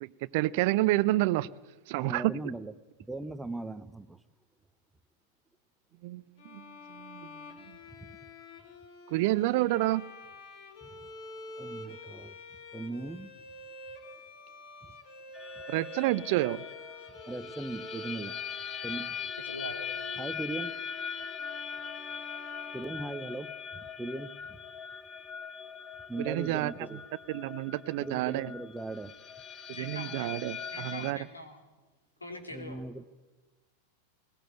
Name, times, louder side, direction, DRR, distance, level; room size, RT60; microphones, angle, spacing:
voice 1, 0.3-1.5 1.9-2.3 6.0-6.2 6.5-6.6 6.9-7.3 9.1-10.0 15.7-16.6 26.2-27.0 27.3-28.5 29.7-31.2, right 18 dB, 50° right, 19 dB, 0.6 m, -29 dB
voice 2, 1.9-2.7 3.1-4.2 8.0-8.1 10.8-10.9 11.6-12.3 12.7-13.3 17.3-18.4 18.8-19.2 20.2-20.8 22.7-24.6 26.1-27.0 28.0-29.1 32.5-33.0, right 2 dB, 5° right, 13 dB, 0.8 m, -39 dB
Bowed string instrument, 6.4-23.6, left 3 dB, 45° left, 3.2 m, -47 dB
sound 1, 15.3-31.1, left 7 dB, 20° left, 1.8 m, -41 dB
voice 3, 19.4-19.9 29.7-30.3 30.7-31.6 32.2-32.8, left 1 dB, 80° left, 5 dB, 3.3 m, -43 dB
21.0 x 19.0 x 9.1 m, 1.2 s
figure-of-eight pair, 90°, 0 cm